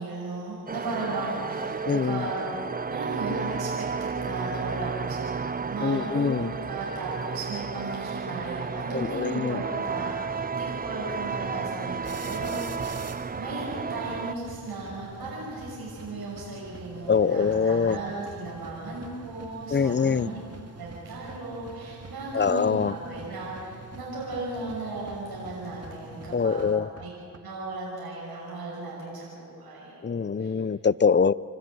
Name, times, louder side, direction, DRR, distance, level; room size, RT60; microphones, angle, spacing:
voice 1, 0.0-2.6 2.9-13.1 13.4-20.4 20.7-26.7 27.0-27.1 27.4-30.0 30.4-30.6, right 2 dB, 80° right, -5 dB, 6.2 m, -36 dB
sound 1, 0.7-14.3, right 5 dB, 25° right, 0.5 m, -33 dB
voice 2, 1.9-2.3 5.8-6.5 8.9-9.6 17.1-18.0 19.7-20.3 22.3-22.9 26.3-26.9 30.0-31.3, left 6 dB, 30° left, 20 dB, 0.6 m, -24 dB
sound 2, 12.0-27.4, right 3 dB, 40° right, 2.1 m, -45 dB
29.0 x 13.5 x 9.7 m, 2.5 s
supercardioid pair, 40°, 37 cm